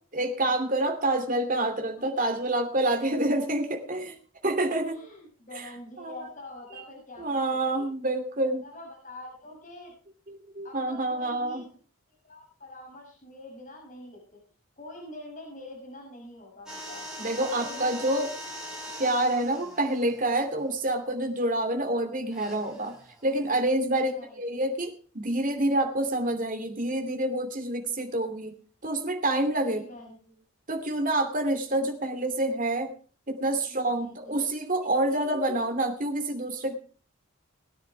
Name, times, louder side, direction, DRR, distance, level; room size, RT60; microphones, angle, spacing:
voice 1, 0.1-4.1 4.4-5.0 5.5-5.7 6.0-6.3 7.2-8.6 10.3-11.7 17.2-18.3 19.0-23.0 23.2-28.5 28.8-29.8 30.7-32.9 33.3-36.7, right 1 dB, 35° right, 5 dB, 2.7 m, -27 dB
voice 2, 3.3-4.0 4.6-7.9 8.6-9.9 10.6-11.8 12.2-14.4 14.8-17.0 17.6-18.1 23.9-24.6 29.7-30.4 33.7-34.5, left 1 dB, 35° left, -2 dB, 6.4 m, -45 dB
sound 1, 16.7-21.2 22.3-23.7, equal, 5° right, 4.5 m, -42 dB
21.5 x 9.9 x 3.3 m, 0.40 s
head